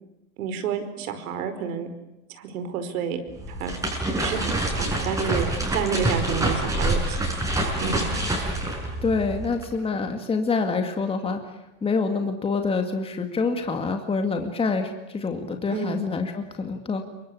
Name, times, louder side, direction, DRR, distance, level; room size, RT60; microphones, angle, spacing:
voice 1, 0.4-1.9 2.3-3.2 3.5-7.2 7.8-8.1 15.7-16.1, right 6 dB, 80° right, 9 dB, 5.0 m, -30 dB
sound 1, 3.3-9.7, right 1 dB, 5° right, 6.6 m, -26 dB
voice 2, 9.0-11.4 11.8-17.0, left 4 dB, 15° left, 5 dB, 2.2 m, -26 dB
27.5 x 24.0 x 8.5 m, 0.96 s
supercardioid pair, 145°, 43 cm